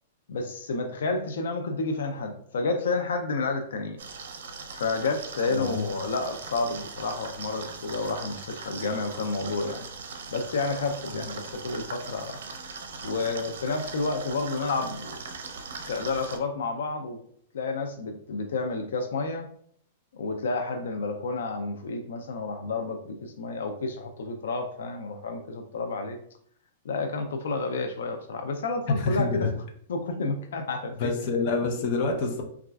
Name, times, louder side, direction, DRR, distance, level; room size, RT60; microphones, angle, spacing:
voice 1, 0.3-4.0 4.7-9.9 10.3-12.4 13.0-15.2 15.9-17.2 17.5-19.5 20.1-26.2 26.8-29.5 29.9-31.1, left 3 dB, 85° left, 5 dB, 0.4 m, -30 dB
sound 1, 4.0-16.4, right 4 dB, 80° right, 0.5 m, -40 dB
voice 2, 5.5-5.9 28.9-29.5 31.0-32.4, left 3 dB, 45° left, 2 dB, 0.6 m, -27 dB
3.9 x 2.3 x 2.3 m, 0.63 s
supercardioid pair, 155°, 0 cm